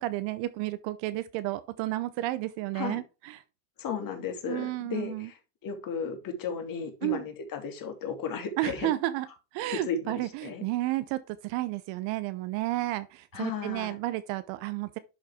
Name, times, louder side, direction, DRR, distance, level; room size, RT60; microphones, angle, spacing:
voice 1, 0.0-3.4 4.5-5.3 7.0-7.2 8.6-9.3 9.5-15.0, right 16 dB, 70° right, 0.8 m, -32 dB
voice 2, 3.8-8.9 9.7-10.6 13.3-14.0, left 5 dB, 45° left, 2.6 m, -35 dB
11.0 x 4.0 x 3.6 m
supercardioid pair, 110°, 46 cm